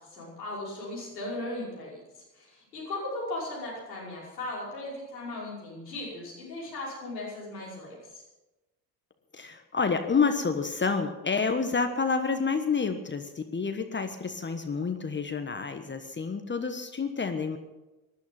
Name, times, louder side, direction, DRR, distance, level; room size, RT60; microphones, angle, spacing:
voice 1, 0.1-2.0 2.3-8.2, left 2 dB, 80° left, -5 dB, 5.7 m, -37 dB
voice 2, 9.4-17.6, left 5 dB, 20° left, 7 dB, 1.3 m, -29 dB
19.5 x 11.5 x 5.5 m, 1.1 s
figure-of-eight pair, 55°, 50 cm